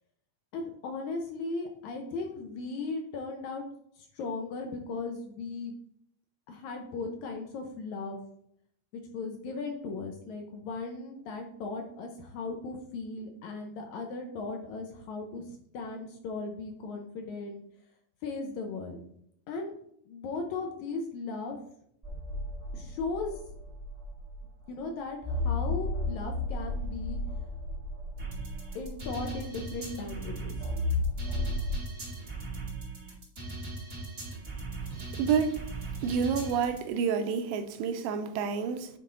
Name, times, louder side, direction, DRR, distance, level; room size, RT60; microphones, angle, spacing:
voice 1, 0.5-3.7 4.0-5.8 6.5-8.3 8.9-17.6 18.2-19.0 19.5-19.8 20.1-21.6 22.7-23.3 24.7-27.2 28.7-30.6, left 3 dB, 70° left, 1.9 m, -37 dB
sound 1, 22.0-24.6 25.2-29.9 30.5-31.7, left 2 dB, 15° right, 2.0 m, -33 dB
sound 2, 28.2-36.8, right 3 dB, 30° right, 2.4 m, -39 dB
voice 2, 35.2-35.6 36.0-38.9, right 6 dB, 90° right, 2.4 m, -29 dB
9.1 x 3.6 x 3.8 m
omnidirectional pair, 3.9 m